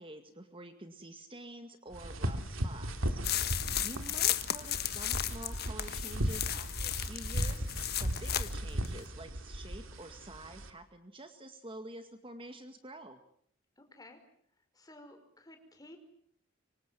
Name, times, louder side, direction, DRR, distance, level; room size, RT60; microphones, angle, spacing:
voice 1, 0.0-3.2 3.8-7.7 8.0-13.2, right 1 dB, 25° right, 8 dB, 2.0 m, -48 dB
sound 1, 1.9-10.7, equal, 80° right, 2.8 m, -37 dB
sound 2, 3.2-8.5 8.8-8.9, left 12 dB, 50° left, 1.4 m, -34 dB
voice 2, 3.7-4.0 13.8-14.2 14.6-16.0, left 1 dB, 20° left, 6 dB, 5.1 m, -54 dB
26.0 x 25.0 x 7.6 m, 0.64 s
head